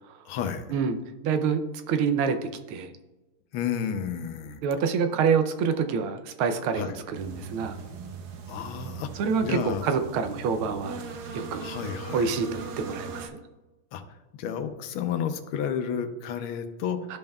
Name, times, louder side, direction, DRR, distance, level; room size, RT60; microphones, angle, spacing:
voice 1, 0.2-0.7 3.5-4.6 6.7-7.0 8.5-9.1 9.4-9.9 11.6-12.3 13.9-14.0 14.4-17.0, left 8 dB, 90° left, 9 dB, 1.5 m, -31 dB
voice 2, 1.2-1.6 1.9-2.9 4.6-7.8 9.2-11.0 11.3-11.7 12.1-13.4 17.1-17.2, right 6 dB, 85° right, 8 dB, 1.5 m, -27 dB
sound 1, 7.1-13.3, right 5 dB, 65° right, 1.2 m, -39 dB
12.5 x 5.4 x 2.3 m, 1.1 s
omnidirectional pair, 2.2 m